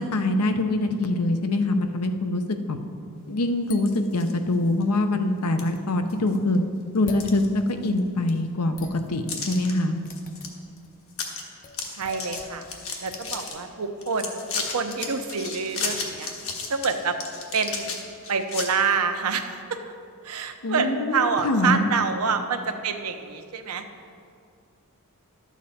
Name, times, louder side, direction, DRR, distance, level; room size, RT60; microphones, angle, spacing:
voice 1, 0.0-2.8 3.3-6.6 6.9-10.0 20.6-21.9, left 2 dB, 85° left, 7 dB, 0.7 m, -24 dB
sound 1, 3.7-4.3 4.8-4.9 5.6-5.7 6.1-6.6 6.9-8.0 8.3-8.4 9.3-9.7 10.1-10.5 10.8-10.9 11.1-11.4 11.7-13.5 14.0-18.7, left 4 dB, 65° left, 1.3 m, -33 dB
sound 2, 3.7-4.8 5.7-5.8 7.1-8.2 8.8-10.9 11.6-13.5, left 4 dB, 40° left, 0.6 m, -45 dB
voice 2, 12.0-12.7 13.0-16.3 16.7-17.2 17.5-18.0 18.3-19.9 20.2-23.8, right 5 dB, 75° right, 7 dB, 0.7 m, -27 dB
11.5 x 7.2 x 4.2 m, 2.3 s
head